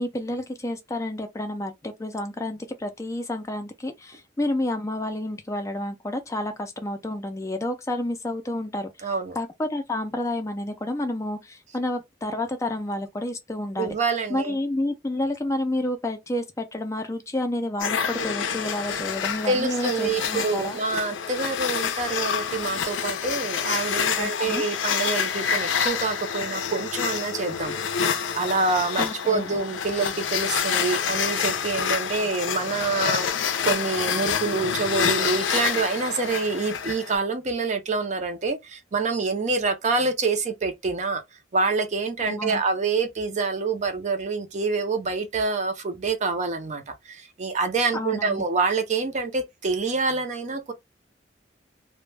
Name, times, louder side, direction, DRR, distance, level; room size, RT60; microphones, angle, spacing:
voice 1, 0.0-13.9 14.3-20.8 24.2-24.7 29.0-29.6 42.2-42.6 47.9-48.4, left 1 dB, 15° left, 0.3 m, -30 dB
voice 2, 9.0-9.4 13.8-14.5 19.5-27.7 28.1-33.2 33.6-41.2 41.5-46.8 47.1-50.7, right 4 dB, 40° right, 0.5 m, -26 dB
sound 1, 17.8-37.2, left 7 dB, 85° left, 0.4 m, -27 dB
2.1 x 2.1 x 3.1 m
head